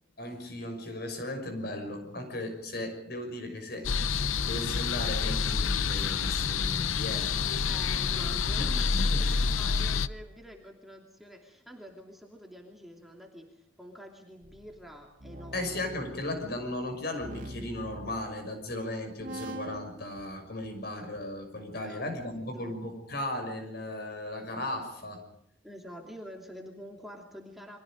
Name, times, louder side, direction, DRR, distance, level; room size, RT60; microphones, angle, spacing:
voice 1, 0.2-3.9 4.5-7.3 8.5-8.7 9.1-9.2 15.5-25.2, left 1 dB, 50° left, 6 dB, 6.2 m, -36 dB
sound 1, 3.8-10.1, left 5 dB, 90° left, 0.8 m, -28 dB
voice 2, 7.6-15.8 21.7-22.0 22.3-22.8 25.6-27.8, equal, ahead, 0 dB, 2.8 m, -47 dB
sound 2, 14.4-18.8 19.2-19.9, right 1 dB, 40° right, 3.2 m, -44 dB
30.0 x 23.5 x 5.2 m, 0.76 s
head